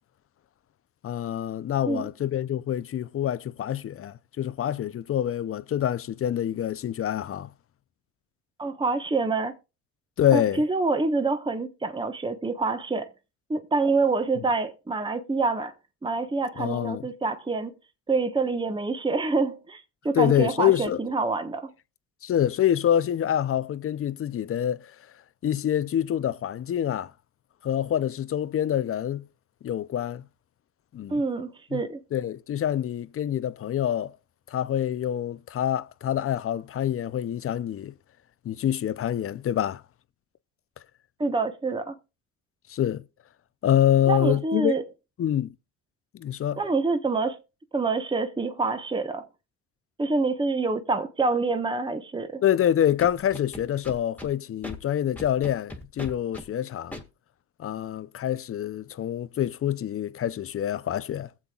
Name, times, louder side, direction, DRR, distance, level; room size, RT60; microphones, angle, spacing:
voice 1, 1.0-7.5 10.2-10.6 16.6-17.0 20.1-21.0 22.2-25.0 25.4-27.1 27.6-29.3 29.6-30.2 30.9-31.2 31.7-31.8 32.1-34.1 34.5-37.9 38.4-39.8 42.7-43.0 43.6-44.7 45.2-45.5 46.1-46.6 52.4-57.0 57.6-61.3, left 10 dB, 40° left, 0.6 m, -26 dB
voice 2, 8.6-9.5 10.3-13.1 13.5-15.7 16.0-17.7 18.1-21.7 31.1-32.0 41.2-42.0 44.1-44.8 46.6-47.4 47.7-49.3 50.0-52.4, right 3 dB, 15° right, 1.2 m, -26 dB
Scratching (performance technique), 53.0-54.3 54.6-54.8 55.2-56.5 56.9-57.0, left 1 dB, 5° left, 2.1 m, -38 dB
21.0 x 7.5 x 2.4 m
supercardioid pair, 75°, 34 cm